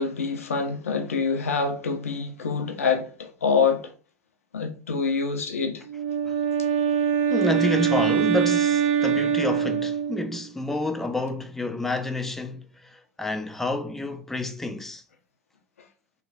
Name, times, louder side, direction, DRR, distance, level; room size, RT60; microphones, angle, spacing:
voice 1, 0.0-3.9 4.5-5.8, left 5 dB, 90° left, 0.5 m, -26 dB
Wind instrument woodwind instrument, 5.9-10.4, right 8 dB, 70° right, 0.5 m, -23 dB
voice 2, 7.3-15.0, left 2 dB, 5° left, 0.3 m, -29 dB
3.0 x 2.2 x 2.5 m
hypercardioid pair, 90°, 7 cm